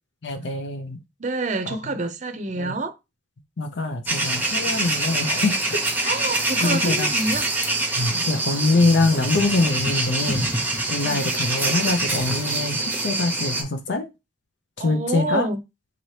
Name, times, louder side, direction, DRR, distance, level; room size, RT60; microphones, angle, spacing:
voice 1, 0.2-1.0 1.7-1.8 2.6-2.8 3.6-6.1 6.6-7.1 8.0-10.5 10.9-14.1 14.8-15.5, left 2 dB, 80° left, 0.6 m, -24 dB
voice 2, 1.2-3.0 6.0-7.4 11.0-11.3 14.8-15.6, right 2 dB, 45° right, 0.6 m, -27 dB
sound 1, 4.1-13.6, right 2 dB, 10° right, 0.8 m, -25 dB
3.9 x 2.9 x 3.2 m
head